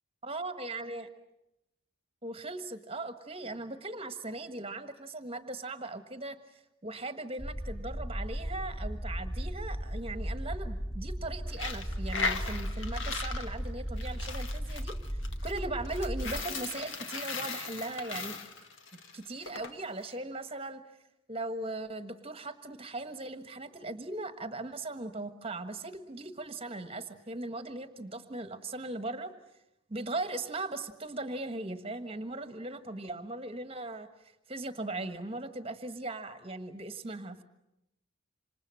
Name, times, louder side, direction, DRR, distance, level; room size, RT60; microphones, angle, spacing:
voice 1, 0.2-1.1 2.2-6.4 6.8-18.4 19.1-20.8 21.3-29.3 29.9-34.1 34.5-37.4, right 2 dB, 25° right, 9 dB, 1.5 m, -39 dB
sound 1, 7.4-16.4, equal, 20° left, 2.5 m, -36 dB
Coin (dropping), 11.5-19.7, left 4 dB, 60° left, 1.9 m, -38 dB
27.0 x 26.5 x 7.7 m, 0.85 s
head